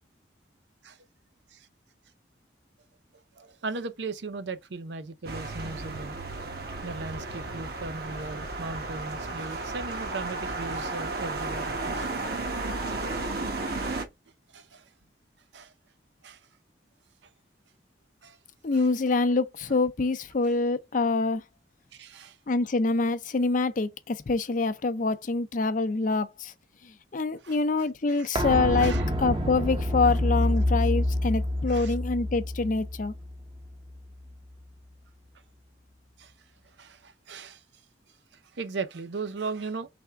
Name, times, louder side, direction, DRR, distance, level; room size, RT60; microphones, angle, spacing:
voice 1, 3.4-6.2 6.8-12.2 12.5-12.6 14.5-14.9 15.5-15.7 16.2-16.4 18.2-18.4 18.7-18.9 21.9-22.4 27.4-28.3 28.8-29.1 30.1-30.2 31.7-31.9 36.2-36.3 36.8-37.6 38.5-39.9, right 4 dB, 80° right, 0.6 m, -37 dB
sound 1, 5.2-14.0, right 3 dB, 60° right, 1.0 m, -33 dB
voice 2, 18.6-21.4 22.5-26.5 27.1-33.1, left 3 dB, 45° left, 0.5 m, -26 dB
sound 2, 28.3-34.0 34.3-34.4, left 1 dB, 25° right, 0.7 m, -27 dB
3.4 x 3.3 x 4.5 m
head